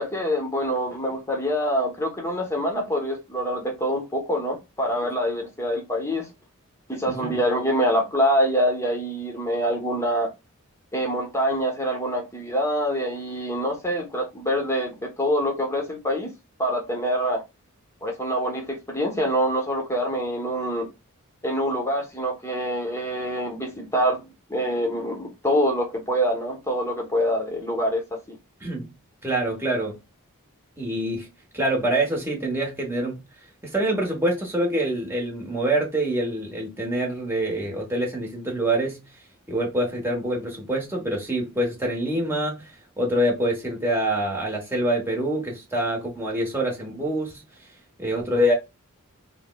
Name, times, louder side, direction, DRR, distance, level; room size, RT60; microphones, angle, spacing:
voice 1, 0.0-6.3 6.9-10.3 10.9-16.3 16.6-17.4 18.0-20.9 21.4-28.0 28.3-28.4, equal, 10° left, 1.0 m, -25 dB
voice 2, 7.1-7.4 28.6-28.9 29.2-30.0 30.8-31.3 31.5-33.2 33.6-39.0 39.5-47.4 48.0-48.5, right 1 dB, 10° right, 1.0 m, -25 dB
4.5 x 2.1 x 2.3 m
head